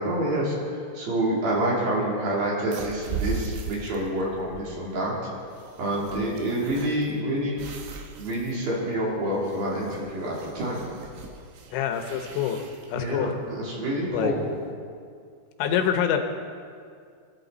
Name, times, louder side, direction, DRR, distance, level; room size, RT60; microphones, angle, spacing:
voice 1, 0.0-5.3 5.8-7.6 8.2-10.8 12.9-14.5, right 1 dB, 55° right, -4 dB, 4.5 m, -27 dB
sound 1, 2.7-14.6, right 5 dB, 70° right, 3.2 m, -39 dB
voice 2, 11.7-13.3 14.1-14.3 15.6-16.2, left 9 dB, 85° left, 6 dB, 3.4 m, -26 dB
24.5 x 12.0 x 4.1 m, 2.2 s
omnidirectional pair, 5.3 m